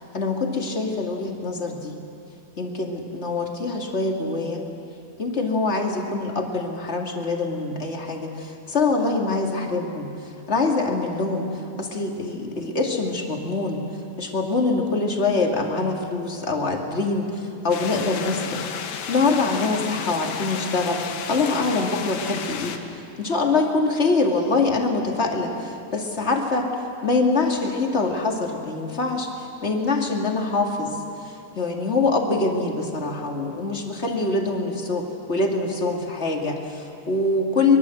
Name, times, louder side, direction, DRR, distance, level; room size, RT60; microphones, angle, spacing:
voice 1, 0.1-1.9 2.6-4.6 5.2-10.1 10.5-11.5 11.8-13.8 14.2-22.8 23.2-26.7 27.0-31.0 31.2-37.8, left 3 dB, 25° left, 1 dB, 1.5 m, -24 dB
sound 1, 17.7-22.8, left 7 dB, 75° left, 3.3 m, -33 dB
24.5 x 22.5 x 7.9 m, 2.5 s
omnidirectional pair, 4.4 m